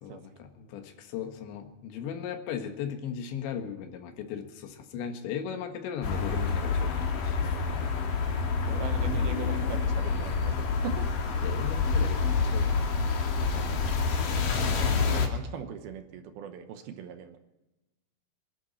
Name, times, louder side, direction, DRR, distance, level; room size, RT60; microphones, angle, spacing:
voice 1, 0.0-7.6 11.4-12.9 13.5-13.8, left 8 dB, 90° left, 5 dB, 3.8 m, -37 dB
sound 1, 6.0-15.3, left 4 dB, 60° left, 3.2 m, -27 dB
voice 2, 8.7-11.1 14.6-17.4, right 8 dB, 70° right, 7 dB, 2.6 m, -40 dB
26.5 x 11.5 x 4.2 m, 1.0 s
omnidirectional pair, 5.0 m